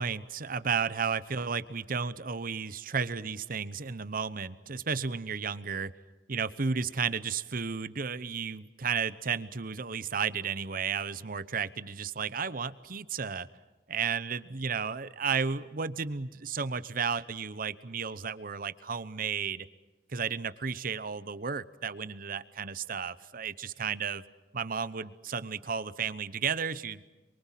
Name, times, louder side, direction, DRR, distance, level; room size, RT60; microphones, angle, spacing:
voice 1, 0.0-5.9 6.3-13.5 13.9-19.7 20.1-24.2 24.5-27.0, right 6 dB, 55° right, 15 dB, 0.9 m, -33 dB
27.5 x 23.5 x 7.5 m, 1.1 s
head